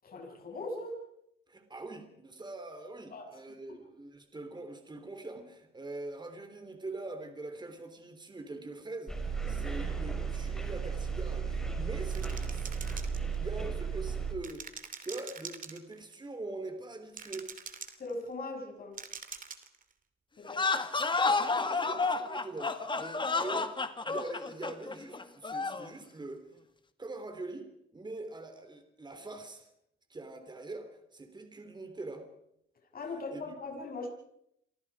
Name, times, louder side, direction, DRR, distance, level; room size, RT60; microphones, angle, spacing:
voice 1, 0.0-1.0 3.1-3.2 3.7-3.8 18.0-19.0 20.4-20.7 32.9-34.1, left 2 dB, 45° left, 0 dB, 7.7 m, -40 dB
voice 2, 1.5-12.7 13.4-14.6 15.0-17.5 21.5-26.4 27.0-29.7 30.1-32.3 33.3-33.5, right 2 dB, 20° right, 7 dB, 3.7 m, -43 dB
sound 1, 9.1-14.3, right 5 dB, 5° left, 5.1 m, -34 dB
sound 2, 12.1-13.6 14.4-16.1 17.1-18.1 19.0-19.8, right 6 dB, 45° right, 2.9 m, -44 dB
sound 3, 20.4-25.9, left 3 dB, 25° left, 2.0 m, -31 dB
28.5 x 24.5 x 5.1 m, 0.76 s
cardioid pair, 90°, 20 cm